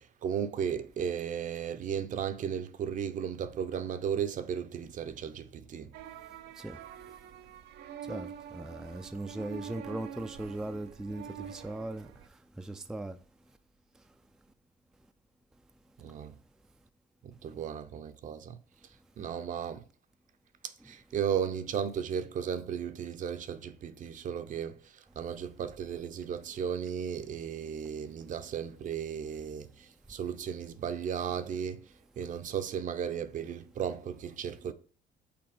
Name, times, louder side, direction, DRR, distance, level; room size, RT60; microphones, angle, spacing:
voice 1, 0.0-5.9 16.0-16.4 17.2-18.6 19.2-19.8 20.6-34.7, right 8 dB, 50° right, 0.7 m, -35 dB
sound 1, 5.9-12.3, right 8 dB, 85° right, 0.7 m, -46 dB
voice 2, 8.0-13.2 20.8-20.9, right 1 dB, 5° right, 0.4 m, -39 dB
6.0 x 4.0 x 4.9 m
cardioid pair, 110°, 17 cm